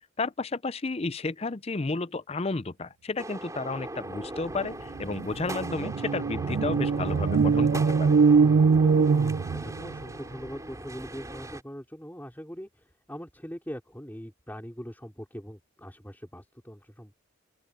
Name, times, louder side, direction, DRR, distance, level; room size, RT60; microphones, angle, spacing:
voice 1, 0.2-8.1, left 3 dB, 30° left, 0.5 m, -32 dB
sound 1, 3.2-11.6, right 1 dB, 15° right, 5.5 m, -39 dB
sound 2, 4.6-4.7 5.0-10.0, right 5 dB, 70° right, 0.4 m, -23 dB
voice 2, 9.5-17.1, equal, 10° left, 4.3 m, -42 dB
open air
head